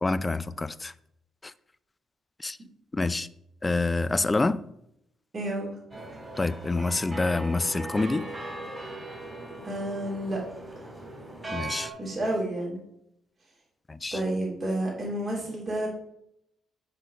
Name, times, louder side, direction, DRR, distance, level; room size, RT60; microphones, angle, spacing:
voice 1, 0.0-0.9 1.4-1.5 2.4-2.6 2.9-3.3 3.6-4.6 6.4-8.3 11.5-11.9 13.9-14.2, left 3 dB, 20° left, 0.4 m, -27 dB
voice 2, 5.3-5.8 9.6-10.4 12.0-12.8 14.1-15.9, right 1 dB, 40° right, 2.4 m, -30 dB
sound 1, 5.9-11.9, right 2 dB, 25° right, 2.9 m, -39 dB
9.1 x 3.9 x 5.6 m
cardioid pair, 90°, 0 cm